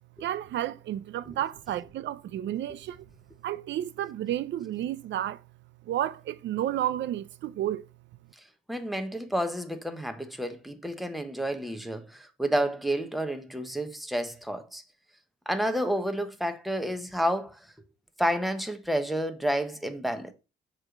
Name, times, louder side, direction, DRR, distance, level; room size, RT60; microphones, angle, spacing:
voice 1, 0.2-3.1 3.4-5.4 5.9-7.9, right 12 dB, 65° right, 0.4 m, -31 dB
voice 2, 8.7-14.8 15.5-17.7 18.2-20.3, equal, ahead, 1.0 m, -30 dB
7.4 x 3.2 x 5.1 m
cardioid pair, 90°, 20 cm